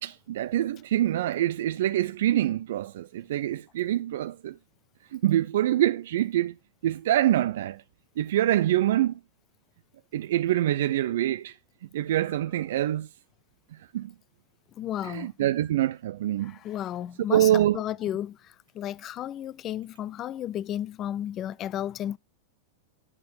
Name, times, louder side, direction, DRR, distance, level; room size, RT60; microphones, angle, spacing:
voice 1, 0.0-4.5 5.1-6.5 6.8-7.8 8.2-9.1 10.1-11.5 11.9-13.1 13.9-14.1 15.0-16.5 17.3-17.8, right 13 dB, 75° right, 0.4 m, -25 dB
voice 2, 14.8-15.3 16.4-22.2, left 11 dB, 35° left, 0.4 m, -33 dB
8.7 x 6.6 x 3.9 m
hypercardioid pair, 120°, 0 cm